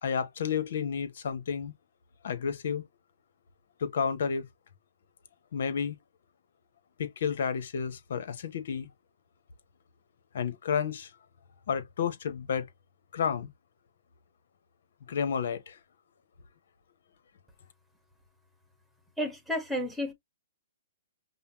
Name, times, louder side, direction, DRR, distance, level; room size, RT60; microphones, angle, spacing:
voice 1, 0.0-1.7 2.2-2.8 3.8-4.5 5.5-5.9 7.0-8.9 10.3-11.1 11.7-12.7 13.1-13.5 15.1-15.8, left 7 dB, 65° left, 1.1 m, -31 dB
voice 2, 19.2-20.1, equal, ahead, 1.4 m, -31 dB
5.5 x 2.2 x 2.8 m
hypercardioid pair, 140°, 0 cm